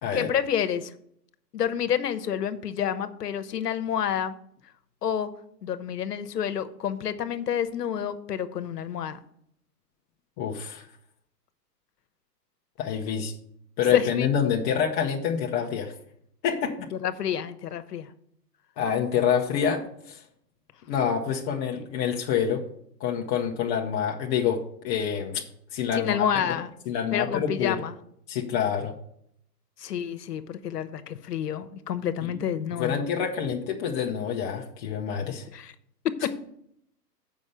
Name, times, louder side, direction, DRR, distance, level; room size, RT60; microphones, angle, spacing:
voice 1, 0.1-0.9 1.5-4.3 5.0-5.3 5.6-9.2 13.9-14.5 17.0-18.1 25.9-26.7 27.1-28.0 29.8-33.0 35.5-35.7 36.0-36.3, left 9 dB, 70° left, 11 dB, 1.0 m, -29 dB
voice 2, 10.4-10.9 12.8-13.3 13.8-15.9 16.4-16.8 18.8-20.2 20.9-22.6 23.0-25.4 25.7-26.2 26.9-27.8 28.3-28.9 32.2-32.4 32.8-35.5, left 7 dB, 20° left, 0 dB, 0.6 m, -27 dB
7.3 x 5.5 x 6.7 m, 0.71 s
hypercardioid pair, 120°, 49 cm